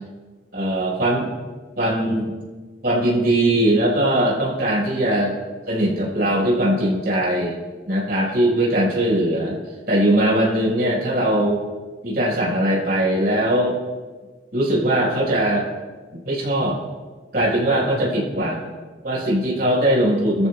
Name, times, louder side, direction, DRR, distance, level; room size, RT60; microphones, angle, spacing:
voice 1, 0.5-1.3 1.8-2.3 2.8-5.3 5.7-7.6 7.9-9.6 9.9-11.6 12.0-13.7 14.5-15.7 16.2-16.8 17.3-18.6 19.0-20.5, right 1 dB, 55° right, -5 dB, 4.4 m, -20 dB
21.0 x 13.5 x 2.2 m, 1.4 s
head